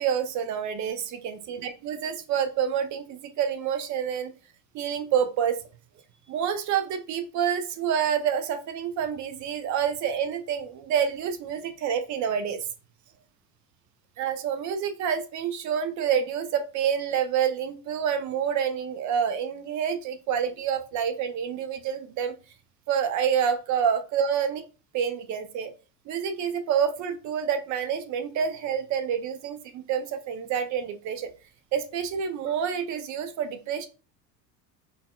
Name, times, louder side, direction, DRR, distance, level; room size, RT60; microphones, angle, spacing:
voice 1, 0.0-4.3 4.7-5.6 6.3-12.6 14.2-22.3 22.9-24.6 24.9-25.7 26.1-31.3 31.7-33.9, right 8 dB, 40° right, 9 dB, 0.5 m, -28 dB
3.9 x 2.3 x 2.3 m, 0.34 s
hypercardioid pair, 80°, 48 cm